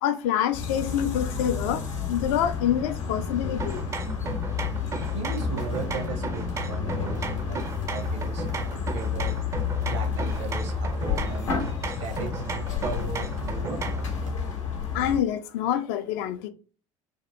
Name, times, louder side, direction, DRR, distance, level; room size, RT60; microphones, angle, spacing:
voice 1, 0.0-3.8 14.9-16.5, left 10 dB, 55° left, 0.4 m, -26 dB
sound 1, 0.5-15.2, left 6 dB, 75° left, 0.8 m, -30 dB
sound 2, 3.6-14.1, right 4 dB, 20° right, 0.4 m, -36 dB
sound 3, 5.0-12.5 12.7-14.4, right 2 dB, 85° right, 1.1 m, -43 dB
voice 2, 5.1-7.6 7.9-8.5 8.9-9.4 9.9-11.5 12.0-14.0, right 5 dB, 65° right, 0.7 m, -36 dB
2.6 x 2.6 x 2.3 m
figure-of-eight pair, 60°, 16 cm